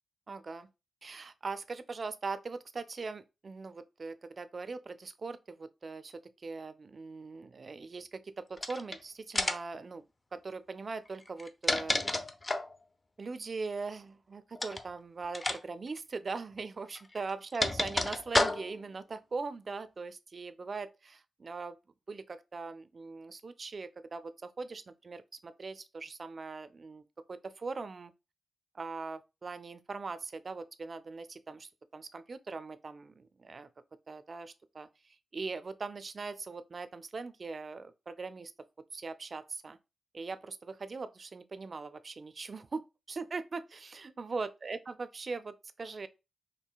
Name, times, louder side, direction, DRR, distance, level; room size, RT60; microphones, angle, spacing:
voice 1, 0.3-0.7 1.0-10.0 10.3-11.9 13.2-21.8 22.1-28.1 28.7-33.7 34.1-38.5 38.9-39.8 40.1-46.1, right 4 dB, 45° right, 0.3 m, -41 dB
Open and Close an iron gate, 8.6-9.0 9.4-9.8 11.3-12.8 14.6-14.9 15.3-15.6 15.9-16.0 17.0-18.9, left 2 dB, 25° left, 0.4 m, -31 dB
4.4 x 2.7 x 2.3 m
cardioid pair, 80°, 0 cm